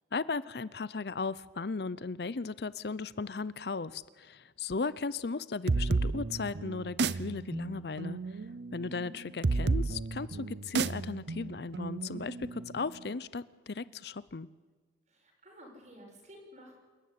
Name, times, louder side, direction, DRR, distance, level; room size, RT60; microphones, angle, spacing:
voice 1, 0.1-8.4 8.7-14.5, left 4 dB, 60° left, 18 dB, 0.6 m, -36 dB
sound 1, 5.7-13.1, right 3 dB, 70° right, 0.6 m, -32 dB
voice 2, 8.8-9.1 15.1-16.8, equal, 40° right, 1 dB, 7.0 m, -52 dB
27.5 x 14.0 x 9.7 m, 1.4 s
head